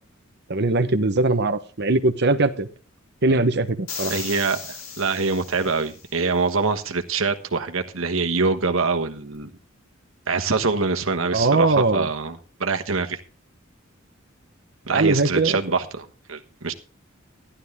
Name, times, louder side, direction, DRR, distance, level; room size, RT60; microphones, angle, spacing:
voice 1, 0.5-2.7 3.2-4.1 11.3-12.1 14.9-15.6, right 2 dB, 55° right, 11 dB, 1.0 m, -20 dB
sound 1, 3.9-6.2, left 5 dB, 75° left, 4.1 m, -36 dB
voice 2, 4.1-9.5 10.3-13.2 14.8-16.7, right 4 dB, 80° right, 6 dB, 1.3 m, -24 dB
14.0 x 11.5 x 3.6 m, 0.37 s
head